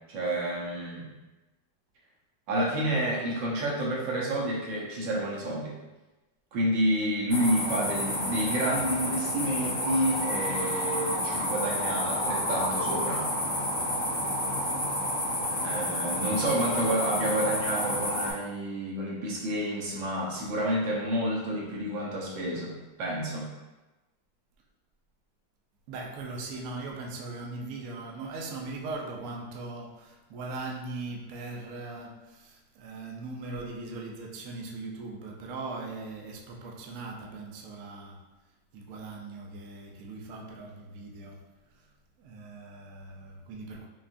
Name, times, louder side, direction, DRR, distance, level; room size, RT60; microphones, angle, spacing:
voice 1, 0.1-1.1 2.5-5.7 6.5-13.3 15.4-23.5, right 1 dB, 85° right, -3 dB, 1.6 m, -29 dB
sound 1, 7.3-18.3, left 1 dB, 50° left, 1.6 m, -30 dB
voice 2, 25.9-38.2 38.7-41.4 42.2-43.9, right 3 dB, 65° right, 0 dB, 0.9 m, -39 dB
5.6 x 2.4 x 2.5 m, 1.1 s
omnidirectional pair, 2.0 m